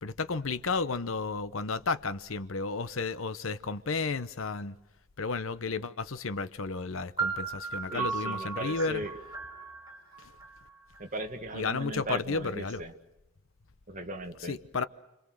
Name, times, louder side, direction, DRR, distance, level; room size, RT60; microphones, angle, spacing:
voice 1, 0.0-4.8 5.2-9.0 10.2-10.3 11.5-12.8 14.4-14.8, left 4 dB, 75° left, 0.9 m, -32 dB
sound 1, 7.2-11.0, right 5 dB, 20° right, 7.3 m, -36 dB
voice 2, 7.9-9.1 11.0-12.9 13.9-14.6, right 1 dB, 40° right, 2.0 m, -38 dB
29.5 x 23.0 x 6.4 m
head